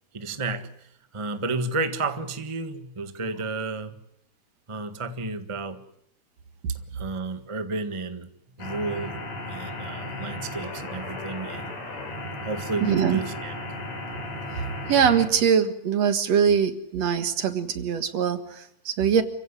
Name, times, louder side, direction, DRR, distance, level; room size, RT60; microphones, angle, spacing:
voice 1, 0.1-4.0 4.7-5.8 6.9-8.3 8.6-9.2 9.5-11.7 12.4-13.5, right 3 dB, 20° right, 0.8 m, -32 dB
sound 1, 8.6-15.3, left 2 dB, 65° left, 5.6 m, -35 dB
voice 2, 12.8-13.2 14.9-19.2, right 7 dB, 60° right, 2.7 m, -22 dB
29.0 x 16.0 x 9.9 m
omnidirectional pair, 3.4 m